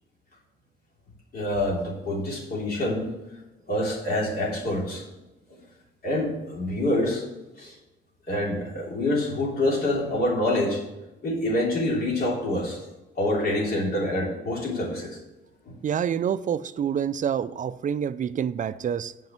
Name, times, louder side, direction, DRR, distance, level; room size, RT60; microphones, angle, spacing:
voice 1, 1.3-3.1 3.7-5.0 5.5-5.6 6.0-7.2 7.6-7.7 8.3-10.8 11.2-12.8 13.2-15.2 15.7-15.8, left 1 dB, 50° left, 3.2 m, -26 dB
voice 2, 15.8-19.1, right 8 dB, 40° right, 0.4 m, -27 dB
7.8 x 5.3 x 7.4 m
cardioid pair, 90°, 20 cm